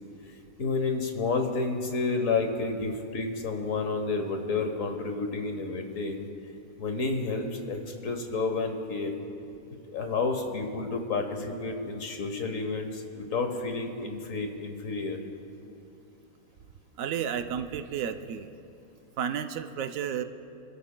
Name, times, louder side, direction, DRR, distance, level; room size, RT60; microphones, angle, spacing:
voice 1, 0.6-6.3 6.8-9.1 9.9-15.2, left 3 dB, 65° left, 5 dB, 1.5 m, -30 dB
voice 2, 17.0-18.5 19.2-20.2, right 8 dB, 75° right, 8 dB, 1.0 m, -32 dB
27.0 x 12.5 x 2.2 m, 2.7 s
omnidirectional pair, 1.5 m